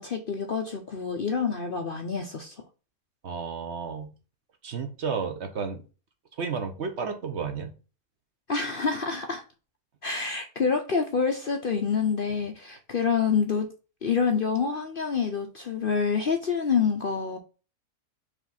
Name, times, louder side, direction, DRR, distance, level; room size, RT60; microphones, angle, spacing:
voice 1, 0.0-2.6 8.5-9.4 10.0-13.7 14.0-17.4, left 5 dB, 50° left, 4 dB, 0.7 m, -27 dB
voice 2, 3.2-4.1 4.6-5.8 6.4-7.7, right 5 dB, 55° right, 6 dB, 1.0 m, -32 dB
5.0 x 3.5 x 5.6 m, 0.34 s
omnidirectional pair, 1.5 m